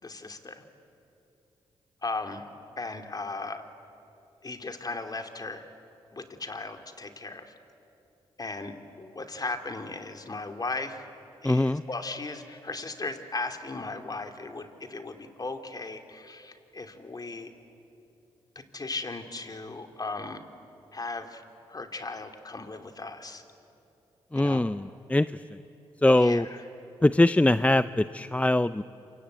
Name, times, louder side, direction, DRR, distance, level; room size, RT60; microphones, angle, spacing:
voice 1, 0.0-0.6 2.0-2.5 2.8-3.6 4.4-5.6 6.1-7.5 8.4-11.0 11.4-17.5 18.5-20.4 20.9-21.4 21.7-23.4 24.3-24.6 26.1-26.4, left 3 dB, 35° left, 6 dB, 3.0 m, -37 dB
voice 2, 11.4-11.8 24.3-25.3 26.0-26.5 27.0-28.8, left 1 dB, 10° left, 14 dB, 0.6 m, -22 dB
27.5 x 24.5 x 8.3 m, 3.0 s
supercardioid pair, 45°, 11 cm